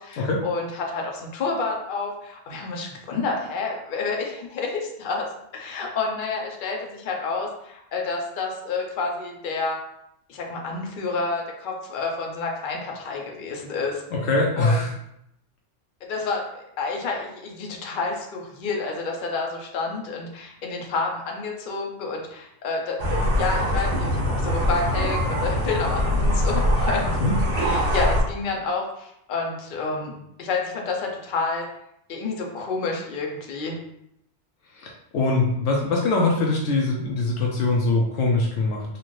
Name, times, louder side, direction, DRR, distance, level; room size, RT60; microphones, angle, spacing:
voice 1, 0.0-5.3 5.5-9.8 10.3-14.0 14.6-14.8 16.0-23.0 23.4-27.2 27.6-31.7 32.1-33.7, left 4 dB, 50° left, 0 dB, 0.8 m, -29 dB
voice 2, 14.1-14.9 27.2-27.3 34.8-38.8, left 3 dB, 85° left, -1 dB, 1.0 m, -22 dB
sound 1, 23.0-28.2, equal, 55° right, 1.5 m, -23 dB
4.2 x 2.5 x 3.1 m, 0.78 s
omnidirectional pair, 1.2 m